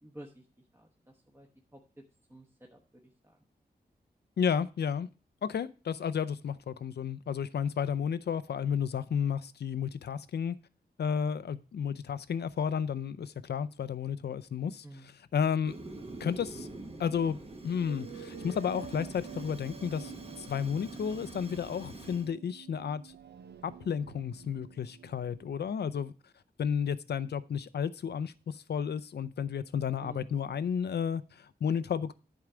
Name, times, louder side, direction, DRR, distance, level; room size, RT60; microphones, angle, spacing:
voice 1, 0.0-0.4 0.7-1.8 2.3-2.8 14.8-15.1 30.0-30.3, right 1 dB, 15° right, 1.1 m, -50 dB
voice 2, 4.4-5.1 5.4-10.6 11.0-15.7 16.2-16.7 17.0-17.4 17.6-23.1 23.6-26.1 26.6-32.1, left 7 dB, 75° left, 0.5 m, -32 dB
Fire, 15.6-22.3, right 2 dB, 35° right, 1.2 m, -45 dB
sound 1, 17.9-25.5, right 8 dB, 80° right, 0.5 m, -49 dB
10.5 x 4.6 x 4.9 m
wide cardioid pair, 105°, 17 cm